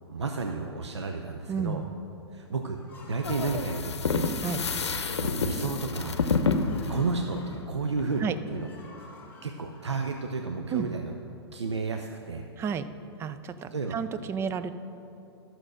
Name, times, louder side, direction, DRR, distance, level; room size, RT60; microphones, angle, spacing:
voice 1, 0.1-1.9 2.3-2.8 3.1-4.3 5.1-6.2 6.9-8.7 9.4-11.2 11.5-12.5 13.7-14.0, right 4 dB, 80° right, 4 dB, 0.7 m, -32 dB
voice 2, 1.5-1.8 4.4-4.6 8.2-8.4 10.7-10.9 12.6-12.9 13.2-14.7, right 6 dB, 20° right, 12 dB, 0.4 m, -31 dB
sound 1, 2.7-10.8, left 2 dB, 15° left, 1.6 m, -51 dB
sound 2, 3.2-8.1, left 4 dB, 75° left, 0.7 m, -29 dB
12.5 x 6.3 x 6.3 m, 2.9 s
figure-of-eight pair, 110°, 14 cm